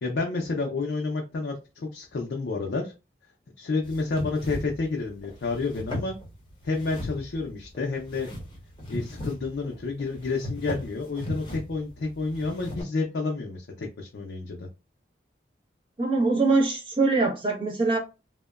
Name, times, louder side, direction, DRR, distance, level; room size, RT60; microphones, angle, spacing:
voice 1, 0.0-2.9 3.6-6.2 6.6-8.3 8.9-14.7, left 3 dB, 75° left, 0.4 m, -30 dB
sound 1, 3.8-12.8, left 1 dB, 25° left, 0.7 m, -38 dB
voice 2, 16.0-18.0, right 3 dB, 30° right, 0.8 m, -23 dB
2.8 x 2.1 x 2.3 m
head